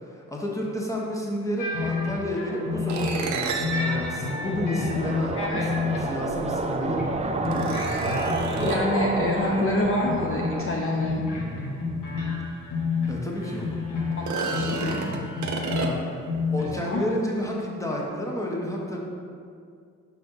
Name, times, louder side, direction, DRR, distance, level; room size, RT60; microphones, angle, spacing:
voice 1, 0.1-5.4 5.7-7.1 13.1-13.7 15.6-16.0 16.5-19.0, equal, 10° left, -2 dB, 1.4 m, -30 dB
sound 1, 1.6-3.3 3.6-7.1 7.4-9.8 10.0-10.7 11.0-16.9, left 4 dB, 70° left, 1.5 m, -30 dB
sound 2, 2.4-10.7, right 3 dB, 20° right, 0.5 m, -30 dB
sound 3, 2.9-5.4 6.6-6.7 7.4-9.0 12.3-12.4 12.8-12.9 14.1-16.3, right 4 dB, 60° right, 0.8 m, -32 dB
voice 2, 5.3-5.7 8.6-11.2 13.9-15.0 16.6-17.1, left 2 dB, 40° left, -2 dB, 0.8 m, -27 dB
6.3 x 3.4 x 5.6 m, 2.2 s
cardioid pair, 65°, 33 cm